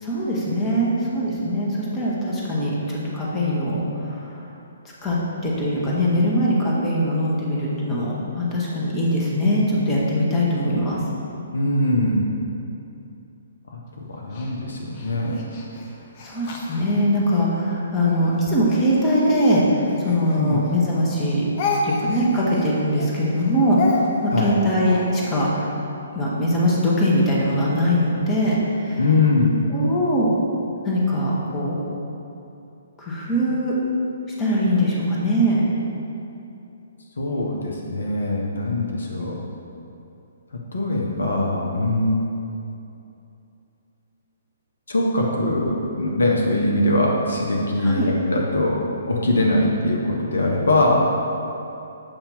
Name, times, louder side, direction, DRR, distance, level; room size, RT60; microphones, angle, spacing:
voice 1, 0.0-4.4 5.0-5.2 5.4-11.0 16.2-21.4 21.8-25.7 26.1-29.0 29.7-30.3 30.8-31.8 33.0-33.7 34.4-35.6 47.8-48.1, equal, 15° left, -6 dB, 1.1 m, -21 dB
voice 2, 11.5-12.2 13.7-13.8 14.1-15.4 20.4-20.6 24.3-24.5 29.0-29.6 37.2-39.4 40.7-42.3 44.9-48.8 49.1-51.0, left 2 dB, 70° left, -2 dB, 0.8 m, -22 dB
Speech, 14.3-17.5 18.0-20.8 21.1-25.5, left 3 dB, 40° left, 0.8 m, -31 dB
7.1 x 2.9 x 5.4 m, 2.7 s
figure-of-eight pair, 125°, 0 cm